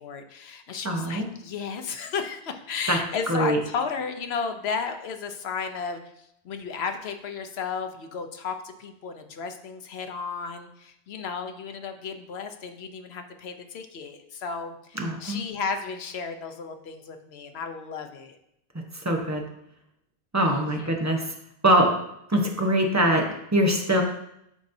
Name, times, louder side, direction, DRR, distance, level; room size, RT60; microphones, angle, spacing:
voice 1, 0.0-18.4 20.5-21.1, left 5 dB, 80° left, 6 dB, 1.0 m, -34 dB
voice 2, 0.8-1.3 2.9-3.0 3.3-3.6 15.0-15.4 19.0-19.4 20.3-21.2 21.6-21.9 22.3-24.0, right 1 dB, 20° right, 1 dB, 0.8 m, -23 dB
11.0 x 4.1 x 2.7 m, 0.77 s
omnidirectional pair, 1.0 m